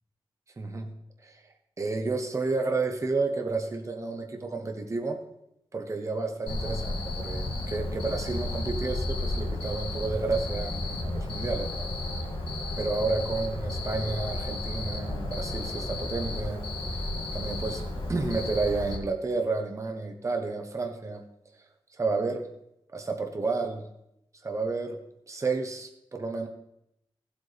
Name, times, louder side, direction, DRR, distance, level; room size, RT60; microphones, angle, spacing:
voice 1, 0.6-0.9 1.2-1.4 1.8-5.2 5.7-11.8 12.8-16.6 16.9-17.0 17.3-21.2 21.9-22.5 22.9-23.8 24.4-25.0 25.3-26.5, right 3 dB, 35° right, 5 dB, 1.1 m, -31 dB
Cricket, 6.5-19.0, left 1 dB, 75° left, 2.2 m, -33 dB
15.5 x 8.0 x 3.4 m, 0.81 s
wide cardioid pair, 125°, 9 cm